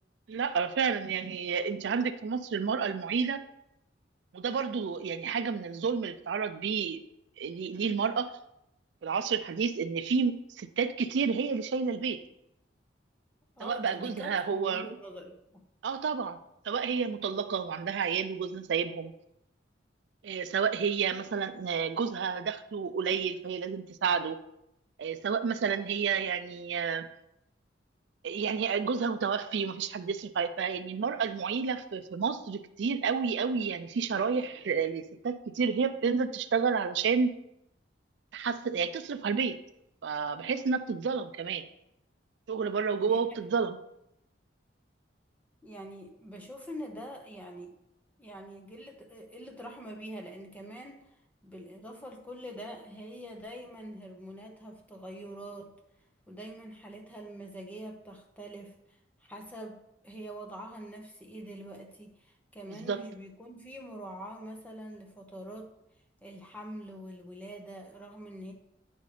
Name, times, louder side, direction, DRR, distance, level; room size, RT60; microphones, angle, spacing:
voice 1, 0.3-3.4 4.3-7.0 7.4-8.3 9.0-12.2 13.6-14.9 15.8-16.4 16.6-19.1 20.2-24.4 25.0-27.1 28.2-37.4 38.3-39.6 40.0-41.6 42.5-43.8 62.8-63.0, right 6 dB, 70° right, 11 dB, 0.4 m, -30 dB
voice 2, 13.6-15.3 43.0-43.4 45.6-47.7 48.2-51.1 51.4-55.7 56.3-65.7 66.2-68.5, equal, 10° left, 2 dB, 0.8 m, -44 dB
9.2 x 5.4 x 3.3 m, 0.82 s
head